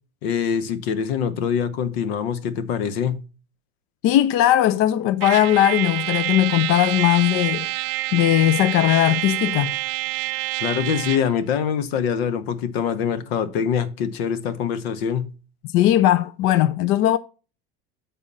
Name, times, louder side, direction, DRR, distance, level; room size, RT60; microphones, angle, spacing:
voice 1, 0.2-3.2 10.6-15.3, left 7 dB, 85° left, 1.1 m, -24 dB
voice 2, 4.0-7.7 8.1-9.8 15.7-17.2, left 13 dB, 45° left, 0.5 m, -18 dB
Trumpet, 5.2-11.3, right 17 dB, 70° right, 0.6 m, -27 dB
8.4 x 4.0 x 5.3 m
supercardioid pair, 135°, 30 cm